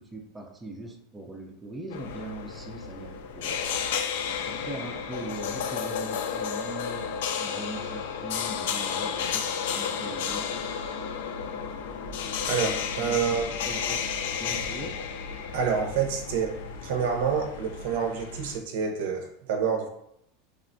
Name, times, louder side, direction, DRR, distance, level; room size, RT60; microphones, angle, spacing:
voice 1, 0.0-3.6 4.4-10.5 13.0-13.2 13.6-15.0, right 1 dB, 10° right, 1 dB, 0.4 m, -41 dB
sound 1, 1.9-18.6, left 7 dB, 80° left, 0.3 m, -32 dB
voice 2, 12.4-13.5 15.5-19.9, right 6 dB, 70° right, 4 dB, 0.5 m, -28 dB
3.3 x 2.1 x 2.5 m, 0.75 s
supercardioid pair, 150°, 0 cm